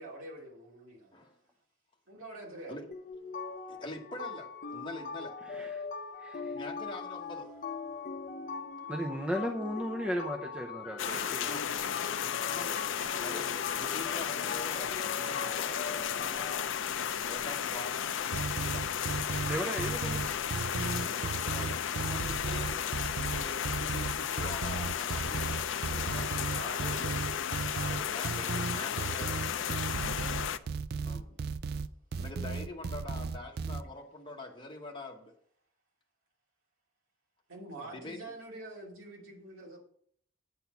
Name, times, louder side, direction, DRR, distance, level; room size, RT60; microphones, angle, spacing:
voice 1, 0.0-1.2 2.1-2.9 26.5-27.2 27.7-28.2 29.9-30.4 37.5-39.8, right 1 dB, 85° right, 2.6 m, -46 dB
sound 1, 2.9-16.6, left 4 dB, 40° left, 0.8 m, -41 dB
voice 2, 3.7-5.4 6.3-7.5 11.4-11.7 12.4-12.8 13.2-16.5 17.2-18.2 18.5-18.9 21.0-27.4 28.1-29.4 31.0-31.4 32.2-35.3 37.8-38.2, left 2 dB, 25° left, 1.2 m, -45 dB
voice 3, 6.2-6.5 8.9-11.5 19.5-20.3, equal, 5° right, 0.6 m, -35 dB
sound 2, 11.0-30.6, left 8 dB, 65° left, 0.4 m, -34 dB
sound 3, 18.3-33.8, right 4 dB, 50° right, 0.4 m, -35 dB
9.3 x 4.2 x 6.9 m
head